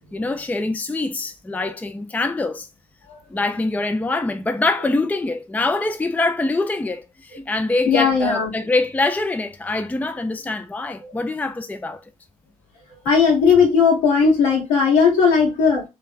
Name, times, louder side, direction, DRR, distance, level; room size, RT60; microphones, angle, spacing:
voice 1, 0.1-2.7 3.3-12.0, left 2 dB, 10° left, 0.5 m, -24 dB
voice 2, 7.9-8.5 13.0-15.8, left 5 dB, 75° left, 1.4 m, -17 dB
3.1 x 2.6 x 3.8 m
figure-of-eight pair, 40°, 18 cm